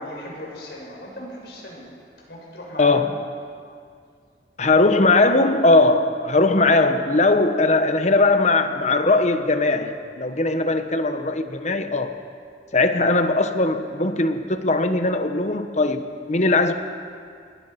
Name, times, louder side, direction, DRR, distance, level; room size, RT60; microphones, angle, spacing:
voice 1, 0.0-1.9 2.3-3.0, equal, 65° left, -1 dB, 6.7 m, -37 dB
voice 2, 4.6-12.1 12.7-16.7, left 2 dB, 40° left, 8 dB, 1.3 m, -19 dB
26.5 x 21.0 x 5.9 m, 2.2 s
head